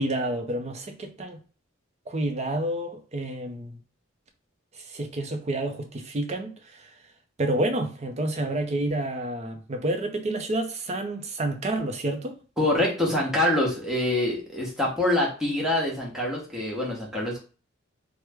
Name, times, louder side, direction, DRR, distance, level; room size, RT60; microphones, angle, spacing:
voice 1, 0.0-1.4 2.1-3.8 4.7-6.9 7.4-12.4, right 1 dB, 35° right, 0.5 m, -29 dB
voice 2, 12.6-17.4, left 1 dB, 5° right, 1.0 m, -25 dB
3.1 x 2.1 x 3.4 m
head